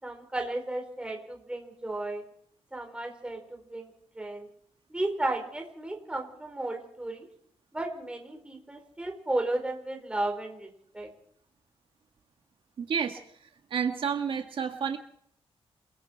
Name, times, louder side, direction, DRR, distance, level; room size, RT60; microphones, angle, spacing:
voice 1, 0.0-2.2 2.7-4.5 4.9-7.3 7.7-11.1, right 2 dB, 10° right, 3 dB, 4.5 m, -34 dB
voice 2, 12.8-13.2 13.7-15.0, right 7 dB, 60° right, 5 dB, 1.7 m, -30 dB
28.5 x 21.5 x 4.6 m, 0.67 s
wide cardioid pair, 170°, 10 cm